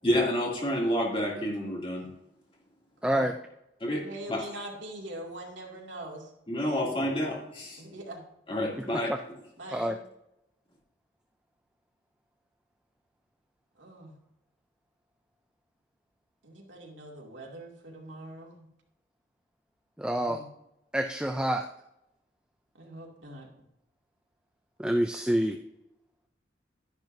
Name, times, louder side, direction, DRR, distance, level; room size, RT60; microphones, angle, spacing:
voice 1, 0.0-2.1 3.8-4.0 4.3-4.4 6.5-7.8 8.5-9.1, equal, 30° left, -2 dB, 2.6 m, -29 dB
voice 2, 3.0-3.3 8.8-9.2 9.7-10.0 20.0-20.4 20.9-21.7 24.8-25.6, right 1 dB, 5° right, 5 dB, 0.4 m, -27 dB
voice 3, 3.9-6.3 7.8-8.2 9.6-10.0 13.8-14.1 16.4-18.7 20.3-20.5 22.8-23.5, right 1 dB, 85° right, 0 dB, 2.4 m, -43 dB
12.0 x 10.5 x 2.7 m, 0.86 s
head